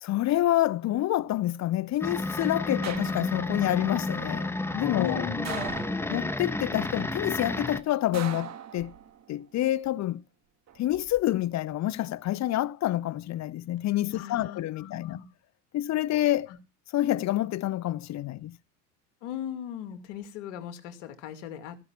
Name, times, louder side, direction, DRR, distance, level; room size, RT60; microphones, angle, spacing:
voice 1, 0.0-5.2 6.1-8.9 9.3-10.2 10.8-15.2 15.7-16.5 16.9-18.6, left 14 dB, 45° left, 0.8 m, -28 dB
sound 1, 2.0-7.8, left 2 dB, 5° left, 1.3 m, -31 dB
sound 2, 2.8-3.6 5.5-6.4 8.1-9.3 10.7-11.2, right 9 dB, 45° right, 1.9 m, -40 dB
voice 2, 4.9-5.8 14.1-15.3 16.5-16.6 19.2-21.8, left 10 dB, 80° left, 2.5 m, -38 dB
16.0 x 5.8 x 7.3 m
supercardioid pair, 90°, 39 cm